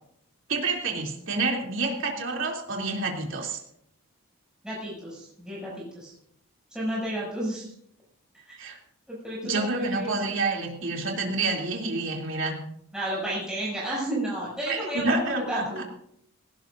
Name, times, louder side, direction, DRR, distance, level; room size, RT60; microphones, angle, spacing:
voice 1, 0.5-3.6 8.6-8.8 9.4-12.6 14.7-15.8, right 3 dB, 55° right, 0 dB, 3.1 m, -28 dB
voice 2, 4.6-6.1 6.7-7.7 8.5-8.6 9.1-10.2 12.9-16.0, right 1 dB, 5° right, -7 dB, 7.1 m, -32 dB
18.0 x 17.5 x 2.6 m, 0.70 s
head